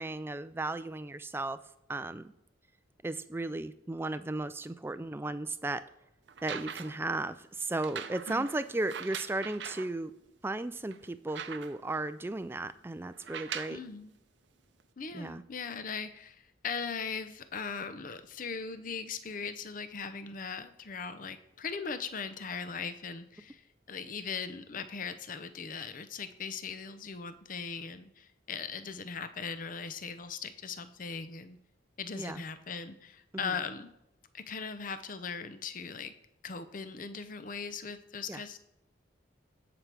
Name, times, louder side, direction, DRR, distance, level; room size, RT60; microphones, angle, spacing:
voice 1, 0.0-1.6 1.9-2.3 3.0-5.8 6.4-10.1 10.4-13.8 15.1-15.4 32.1-32.4 33.4-33.5 38.3-38.4, right 2 dB, 10° right, 13 dB, 0.3 m, -35 dB
sound 1, 6.3-7.1 7.8-9.9 10.5-10.6 10.9-12.0 13.1-13.9 14.8-14.9, right 7 dB, 70° right, 0.6 m, -42 dB
voice 2, 13.7-14.1 15.0-31.6 32.0-33.9 34.3-36.1 36.4-38.6, left 5 dB, 45° left, 11 dB, 0.7 m, -39 dB
17.0 x 6.0 x 3.4 m, 0.84 s
head